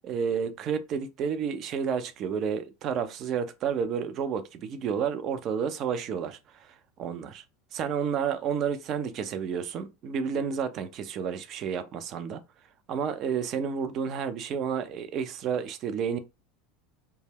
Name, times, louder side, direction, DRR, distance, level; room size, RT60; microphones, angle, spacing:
voice 1, 0.0-6.4 6.7-7.4 7.7-12.4 12.9-16.2, right 7 dB, 45° right, 0.5 m, -30 dB
2.2 x 2.1 x 3.3 m
hypercardioid pair, 95°, 0 cm